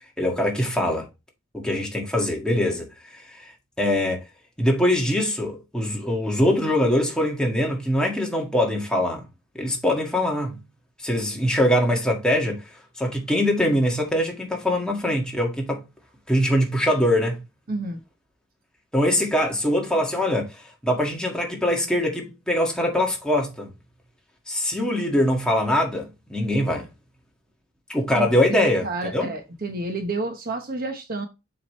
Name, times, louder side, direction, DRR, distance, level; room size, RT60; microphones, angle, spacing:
voice 1, 0.2-1.1 1.5-3.5 3.8-4.2 4.6-9.2 9.5-10.6 11.0-15.8 16.3-17.4 18.9-23.7 24.5-26.9 27.9-28.9 29.1-29.3, left 1 dB, 5° left, 1.7 m, -23 dB
voice 2, 17.7-18.0 28.2-31.3, right 2 dB, 45° right, 1.1 m, -30 dB
7.3 x 5.0 x 3.1 m
head